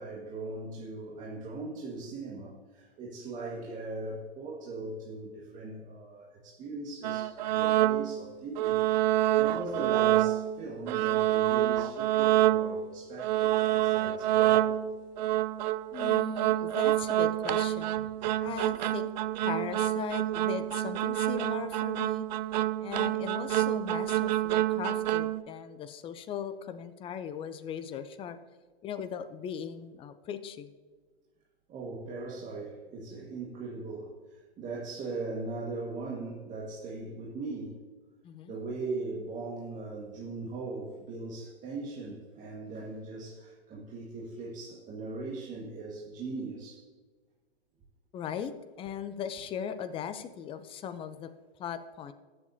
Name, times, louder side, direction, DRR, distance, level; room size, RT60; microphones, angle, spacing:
voice 1, 0.0-8.8 9.4-14.8 31.7-37.8 38.5-46.9, right 3 dB, 25° right, -4 dB, 1.8 m, -39 dB
sound 1, 7.0-8.2 8.6-10.6 10.9-12.9 13.2-25.4, right 14 dB, 45° right, 0.5 m, -27 dB
voice 2, 15.9-18.0 18.4-19.1 19.4-22.3 22.8-28.4 28.8-30.7 38.2-38.6 48.1-48.5 48.8-51.3 51.6-52.1, left 8 dB, 15° left, 11 dB, 0.6 m, -38 dB
20.0 x 7.6 x 2.8 m, 1.4 s
hypercardioid pair, 125°, 32 cm